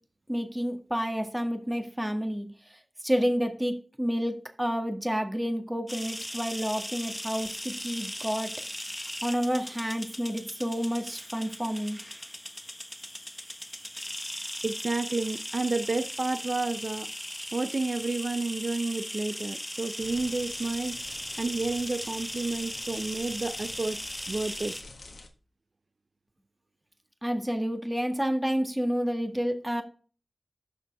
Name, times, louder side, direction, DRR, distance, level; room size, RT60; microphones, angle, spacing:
voice 1, 0.3-2.8 3.0-8.5 9.2-12.0 27.2-29.8, equal, 10° right, 1.8 m, -29 dB
sound 1, 5.9-24.8, equal, 10° left, 1.3 m, -38 dB
voice 2, 14.6-17.1 17.5-21.0 21.4-24.0 24.3-24.7, right 3 dB, 55° right, 0.6 m, -30 dB
sound 2, 20.0-25.3, left 3 dB, 80° left, 1.6 m, -47 dB
11.5 x 6.8 x 3.5 m
wide cardioid pair, 60°, 0 cm